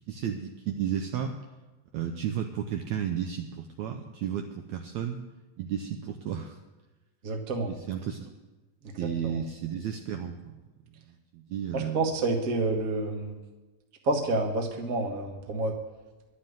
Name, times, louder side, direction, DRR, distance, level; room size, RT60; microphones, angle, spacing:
voice 1, 0.1-1.4 1.9-5.2 5.6-6.6 7.9-8.3 9.0-10.5 11.1-12.1, right 9 dB, 80° right, 5 dB, 1.7 m, -33 dB
voice 2, 7.2-7.7 9.2-9.4 11.7-13.4 14.0-15.7, right 2 dB, 50° right, 3 dB, 1.0 m, -29 dB
11.5 x 7.4 x 9.3 m, 1.2 s
omnidirectional pair, 4.0 m